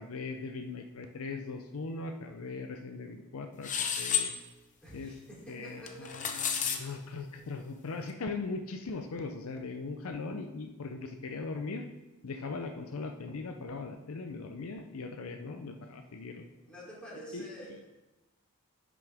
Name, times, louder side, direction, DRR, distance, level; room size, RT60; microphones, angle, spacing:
voice 1, 0.0-4.3 4.9-5.2 5.5-11.9 12.2-16.5 17.3-17.5, left 3 dB, 70° left, 5 dB, 0.5 m, -39 dB
sound 1, 3.6-4.3 5.9-6.8, left 8 dB, 35° left, 0.7 m, -30 dB
voice 2, 4.8-6.7 16.6-17.9, right 1 dB, 5° left, -8 dB, 3.1 m, -48 dB
10.5 x 6.1 x 3.5 m, 1.0 s
head